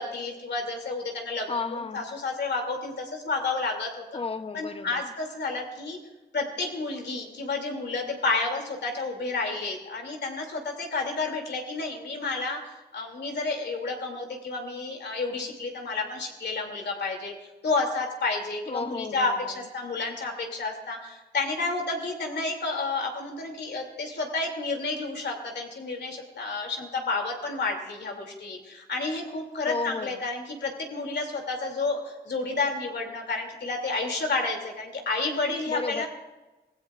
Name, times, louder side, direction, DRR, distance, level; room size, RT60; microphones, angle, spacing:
voice 1, 0.0-1.6 1.9-4.0 4.5-6.0 6.3-17.3 17.6-36.1, left 3 dB, 75° left, 2.7 m, -30 dB
voice 2, 1.5-2.1 4.1-5.1 18.7-19.6 29.6-30.2 35.7-36.1, left 4 dB, 35° left, 0.8 m, -33 dB
25.5 x 17.0 x 2.5 m
wide cardioid pair, 160°, 18 cm